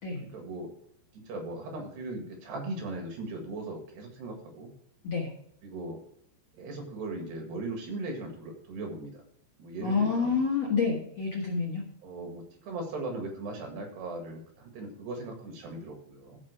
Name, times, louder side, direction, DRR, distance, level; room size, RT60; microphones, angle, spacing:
voice 1, 0.3-0.7 1.1-4.7 5.6-6.0 6.5-9.2 9.6-10.4 12.0-16.4, right 2 dB, 65° right, 2 dB, 3.7 m, -38 dB
voice 2, 9.8-11.8, left 5 dB, 55° left, -2 dB, 1.8 m, -28 dB
15.0 x 6.0 x 4.8 m, 0.68 s
omnidirectional pair, 5.6 m